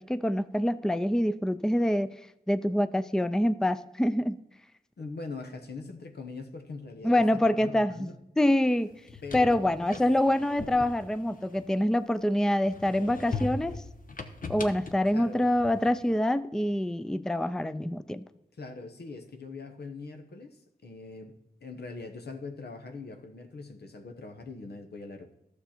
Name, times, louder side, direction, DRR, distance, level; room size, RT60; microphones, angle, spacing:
voice 1, 0.0-2.1 2.5-4.4 7.0-8.1 8.4-8.9 9.3-13.8 14.5-18.2, left 1 dB, 5° left, 13 dB, 0.5 m, -26 dB
voice 2, 5.0-8.2 9.2-10.0 15.1-15.5 18.6-21.3 21.6-25.3, left 3 dB, 80° left, 5 dB, 1.0 m, -42 dB
sound 1, 8.9-12.2 12.6-16.0, left 3 dB, 55° left, 1.0 m, -40 dB
12.0 x 6.7 x 4.3 m, 0.88 s
cardioid pair, 45°, 17 cm